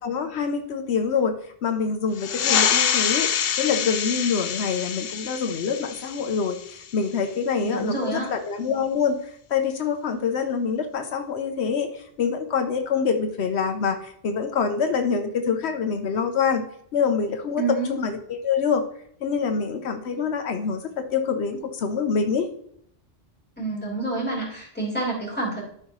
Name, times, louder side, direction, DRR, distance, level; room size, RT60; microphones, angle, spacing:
voice 1, 0.0-1.3 1.6-9.2 9.5-16.6 16.9-18.8 19.2-22.5, left 6 dB, 85° left, 6 dB, 1.1 m, -25 dB
sound 1, 2.1-7.3, left 8 dB, 65° left, 0.8 m, -26 dB
voice 2, 7.6-8.3 17.6-17.9 23.6-25.6, right 3 dB, 10° left, -5 dB, 3.6 m, -28 dB
12.5 x 5.6 x 3.1 m, 0.67 s
omnidirectional pair, 1.1 m